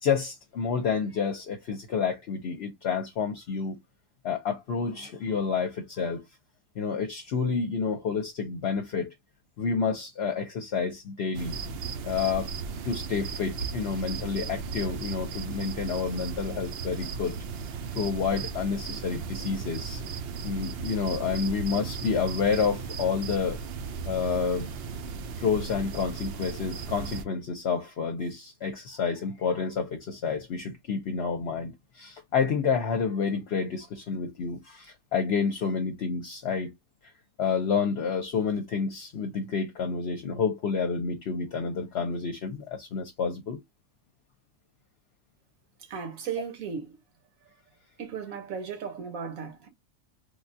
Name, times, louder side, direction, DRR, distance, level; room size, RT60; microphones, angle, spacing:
voice 1, 0.0-3.8 4.2-6.2 6.8-9.1 9.6-11.6 12.0-12.5 12.8-17.4 17.9-20.0 20.4-23.6 24.1-24.7 25.4-36.7 37.4-43.6, left 5 dB, 60° left, 0.8 m, -29 dB
sound 1, 11.3-27.2, right 5 dB, 65° right, 0.6 m, -36 dB
voice 2, 45.8-47.0 48.0-49.7, right 6 dB, 85° right, 1.4 m, -36 dB
3.4 x 2.3 x 2.6 m
omnidirectional pair, 1.4 m